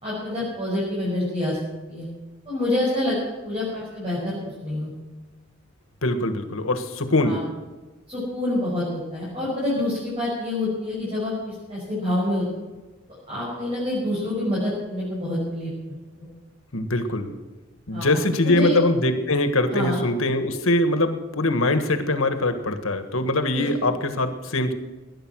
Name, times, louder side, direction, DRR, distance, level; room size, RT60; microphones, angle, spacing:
voice 1, 0.0-1.6 1.9-2.1 2.5-4.9 7.2-7.4 8.1-12.6 13.3-16.3 17.9-18.2 18.4-18.8 19.7-20.0 23.5-23.7, left 1 dB, 30° right, -7 dB, 6.3 m, -27 dB
voice 2, 6.0-7.4 16.7-17.3 17.9-24.7, left 2 dB, 90° left, 8 dB, 1.6 m, -22 dB
20.0 x 10.0 x 6.3 m, 1.2 s
head